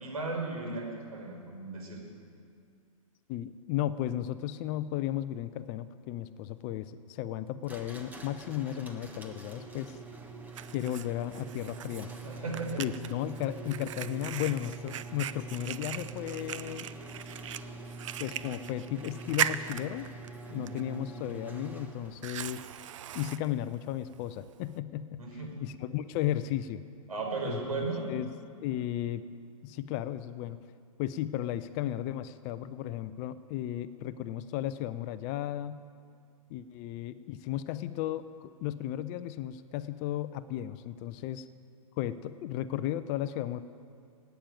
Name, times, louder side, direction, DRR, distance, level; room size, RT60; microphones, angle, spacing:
voice 1, 0.0-2.0 12.2-12.8 20.5-20.8 25.2-25.5 27.1-28.1, right 3 dB, 85° right, 0 dB, 5.1 m, -36 dB
voice 2, 3.3-10.0 10.7-12.1 12.8-16.9 18.2-20.1 20.5-22.7 23.1-25.2 25.6-26.8 27.4-27.8 28.1-28.3 28.6-29.3 29.6-30.6 31.0-35.8 36.5-41.5 42.0-43.6, left 12 dB, 30° left, 13 dB, 0.6 m, -34 dB
sound 1, 7.6-22.3, right 3 dB, 10° right, 1.3 m, -45 dB
Fire, 9.8-24.8, right 10 dB, 60° right, 0.6 m, -40 dB
16.5 x 9.2 x 8.9 m, 2.3 s
hypercardioid pair, 135°, 18 cm